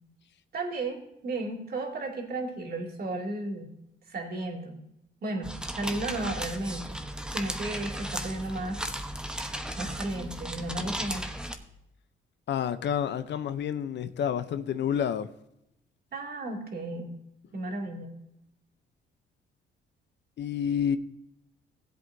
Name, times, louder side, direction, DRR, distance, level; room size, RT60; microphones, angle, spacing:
voice 1, 0.5-3.7 4.1-4.8 5.2-5.5 5.7-7.0 7.3-8.8 9.3-11.3 16.1-17.1 17.5-18.1, right 2 dB, 50° right, 2.8 m, -34 dB
sound 1, 5.4-11.6, equal, 5° right, 1.0 m, -35 dB
voice 2, 12.5-15.3 20.4-21.0, left 8 dB, 65° left, 0.7 m, -29 dB
16.0 x 8.0 x 2.7 m
cardioid pair, 90°, 20 cm